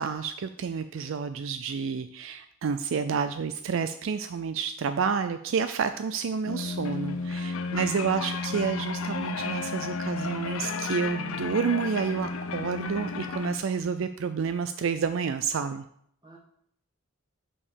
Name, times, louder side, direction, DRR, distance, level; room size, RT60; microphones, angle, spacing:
voice 1, 0.0-15.8, right 6 dB, 65° right, 10 dB, 0.4 m, -29 dB
sound 1, 6.5-13.6, left 4 dB, 80° left, 0.7 m, -33 dB
voice 2, 7.6-8.3 16.2-16.4, right 3 dB, 20° right, -1 dB, 1.7 m, -53 dB
5.4 x 5.4 x 6.3 m, 0.67 s
head